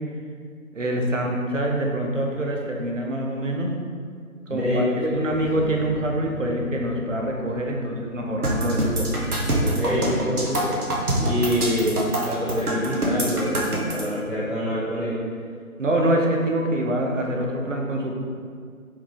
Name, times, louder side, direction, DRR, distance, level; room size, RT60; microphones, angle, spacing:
voice 1, 0.7-3.7 4.5-9.1 15.8-18.1, right 1 dB, 60° right, 0 dB, 0.7 m, -25 dB
voice 2, 4.5-5.3 9.6-10.8 11.2-15.2, equal, ahead, -11 dB, 0.4 m, -26 dB
sound 1, 5.2-10.8, left 1 dB, 65° left, 1.2 m, -39 dB
sound 2, 8.4-14.0, right 1 dB, 80° right, 1.1 m, -25 dB
4.7 x 3.5 x 2.9 m, 2.1 s
figure-of-eight pair, 165°, 44 cm